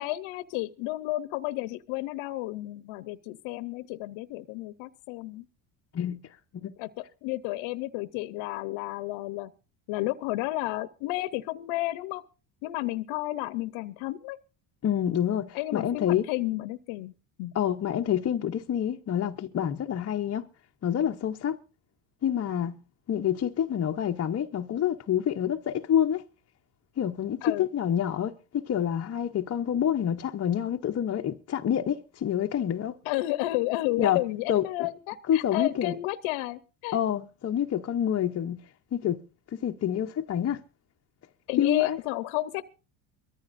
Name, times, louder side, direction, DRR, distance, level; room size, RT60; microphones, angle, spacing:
voice 1, 0.0-5.4 6.8-6.9 7.2-9.5 9.9-12.2 12.6-14.4 15.5-17.1 17.4-17.5 27.4-27.7 33.1-37.0 41.5-42.6, left 17 dB, 80° left, 0.9 m, -32 dB
voice 2, 14.8-16.3 17.5-20.5 20.8-21.6 22.2-22.8 23.1-26.2 27.0-33.0 34.0-34.2 34.5-34.9 35.3-36.0 36.9-38.6 38.9-39.2 39.5-40.6 41.6-42.0, left 10 dB, 30° left, 0.7 m, -27 dB
23.5 x 14.0 x 2.5 m
cardioid pair, 120°, 47 cm